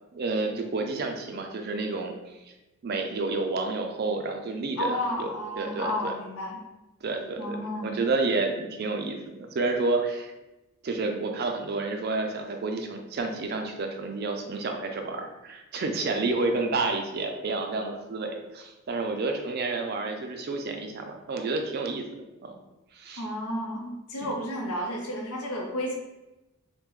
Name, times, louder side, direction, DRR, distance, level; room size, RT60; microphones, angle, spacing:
voice 1, 0.1-2.1 2.8-5.3 5.6-6.1 7.0-7.6 7.8-10.3 10.8-22.1 22.4-22.6 22.9-23.2 24.2-24.3, right 3 dB, 45° right, 4 dB, 0.3 m, -30 dB
voice 2, 4.8-6.6 7.4-8.0 23.2-26.0, left 1 dB, 85° left, 0 dB, 0.7 m, -32 dB
3.4 x 2.1 x 3.0 m, 1.0 s
head